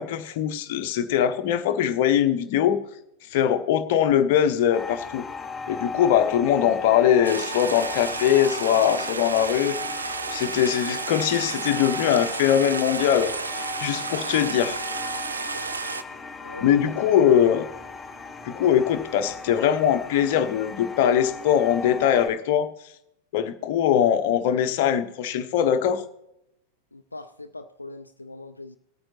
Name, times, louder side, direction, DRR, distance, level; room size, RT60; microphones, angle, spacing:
voice 1, 0.0-2.8 3.3-5.2 5.7-9.8 10.3-14.8 16.6-17.7 18.4-22.7 23.3-26.0, left 9 dB, 50° left, 8 dB, 0.9 m, -22 dB
sound 1, 4.7-22.3, left 4 dB, 10° left, 4.4 m, -37 dB
Stream, 7.2-16.0, right 4 dB, 75° right, 0.5 m, -32 dB
voice 2, 16.4-17.1 26.9-28.8, left 3 dB, 80° left, 8 dB, 0.4 m, -40 dB
19.5 x 8.9 x 2.9 m, 0.83 s
figure-of-eight pair, 90°, 0 cm